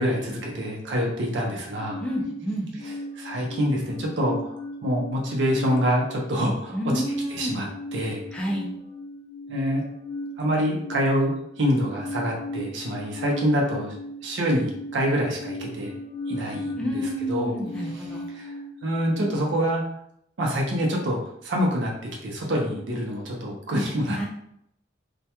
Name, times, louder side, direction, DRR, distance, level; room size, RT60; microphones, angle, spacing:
voice 1, 0.0-2.0 2.8-4.4 4.8-6.8 7.3-7.7 7.9-8.2 9.5-9.8 10.4-13.9 14.2-15.9 16.3-17.0 17.3-17.5 18.3-18.5 18.8-19.8 20.4-21.9 22.2-24.2, equal, 80° right, -1 dB, 0.6 m, -26 dB
sound 1, 1.8-19.3, left 1 dB, 70° left, 0.5 m, -37 dB
voice 2, 2.0-2.7 6.7-7.6 8.3-8.8 16.8-18.2 24.2-24.3, equal, 5° left, -4 dB, 0.4 m, -29 dB
2.2 x 2.2 x 2.8 m, 0.74 s
head